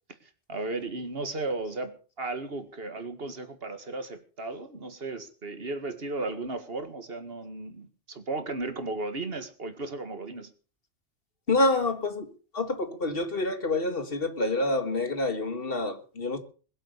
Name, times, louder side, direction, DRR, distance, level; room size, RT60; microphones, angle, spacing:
voice 1, 0.2-10.5, right 2 dB, 50° right, 2.1 m, -35 dB
voice 2, 11.5-12.3 12.5-16.4, left 2 dB, 50° left, 2.0 m, -27 dB
21.5 x 7.9 x 6.7 m
omnidirectional pair, 1.3 m